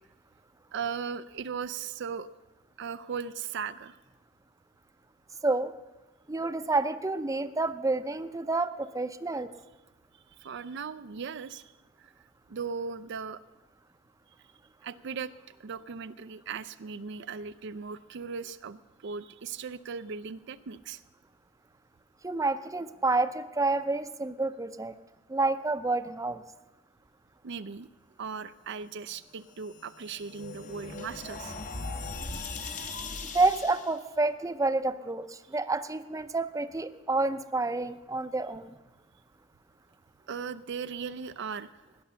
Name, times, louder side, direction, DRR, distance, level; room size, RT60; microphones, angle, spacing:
voice 1, 0.7-2.3 2.8-4.0 10.4-11.7 12.0-12.1 12.5-13.4 14.8-15.3 15.6-21.0 27.4-27.9 28.2-31.6 40.3-41.8, right 6 dB, 60° right, 12 dB, 0.5 m, -38 dB
voice 2, 6.3-9.5 22.2-24.9 25.3-26.4 33.3-38.7, right 3 dB, 15° right, 11 dB, 0.6 m, -29 dB
sound 1, 29.5-34.0, left 3 dB, 40° left, 1.0 m, -39 dB
17.5 x 10.5 x 6.9 m, 1.1 s
head